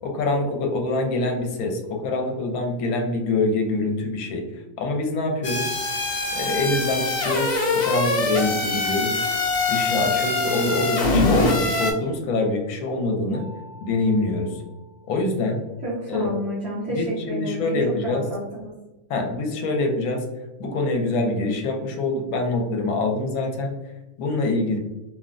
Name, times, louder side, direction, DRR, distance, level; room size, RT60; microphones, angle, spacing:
voice 1, 0.0-4.4 4.8-5.8 6.3-9.3 9.7-13.4 13.8-14.6 15.1-15.6 16.1-16.3 16.9-18.2 19.1-20.3 20.6-23.8 24.2-24.8, left 2 dB, 80° left, 3 dB, 1.0 m, -25 dB
sound 1, 5.4-11.9, left 3 dB, 60° left, 0.7 m, -23 dB
Mallet percussion, 13.3-15.8, equal, 15° left, 0.7 m, -49 dB
voice 2, 15.8-18.7, right 1 dB, 60° right, -7 dB, 0.8 m, -30 dB
2.9 x 2.1 x 2.4 m, 1.1 s
omnidirectional pair, 1.5 m